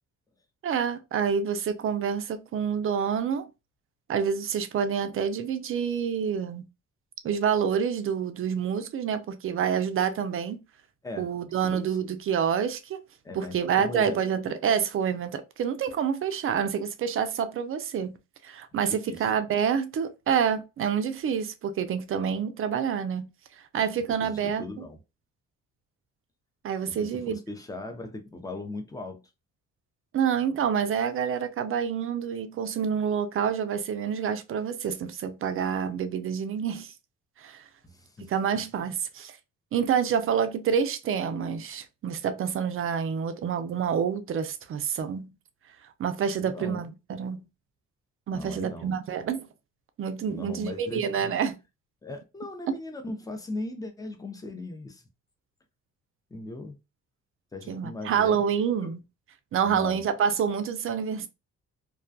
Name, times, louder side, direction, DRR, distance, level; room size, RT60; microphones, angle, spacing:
voice 1, 0.6-3.5 4.1-6.6 7.2-10.6 11.2-13.0 13.3-18.2 18.4-23.3 23.7-24.8 26.6-27.4 30.1-36.9 37.4-37.6 38.2-39.3 39.7-45.3 46.0-47.5 48.3-49.5 50.0-51.6 52.7-52.8 57.7-59.0 59.5-61.3, right 7 dB, 45° right, 0.5 m, -27 dB
voice 2, 13.2-14.2 18.9-19.3 24.2-25.0 27.0-29.2 37.8-38.3 46.4-46.8 48.3-48.9 50.3-51.3 52.0-55.0 56.3-56.8 57.5-58.4 58.8-58.9 59.6-60.0, left 2 dB, 10° left, 0.6 m, -38 dB
2.3 x 2.2 x 2.5 m
cardioid pair, 90°, 30 cm